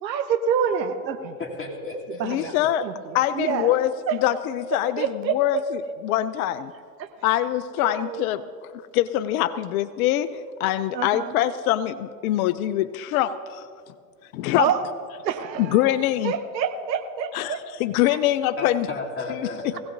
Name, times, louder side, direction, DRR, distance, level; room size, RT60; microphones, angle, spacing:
voice 1, 0.0-1.4 2.1-2.5 2.8-3.8 4.1-4.2 4.7-5.6 7.0-7.1 7.8-8.3 10.9-11.3 14.6-14.8 15.2-17.6 18.1-18.2, right 7 dB, 90° right, 8 dB, 1.0 m, -27 dB
voice 2, 1.4-2.5 18.6-19.8, left 3 dB, 25° left, -2 dB, 2.9 m, -33 dB
voice 3, 2.2-2.8 3.1-3.9 4.2-5.0 5.3-5.6 6.0-6.7 7.2-8.4 8.9-13.7 14.3-14.7 15.6-16.3 17.3-17.5 17.8-18.9 19.3-19.8, left 13 dB, 60° left, 14 dB, 0.6 m, -23 dB
20.5 x 16.5 x 2.7 m, 2.1 s
hypercardioid pair, 105°, 50 cm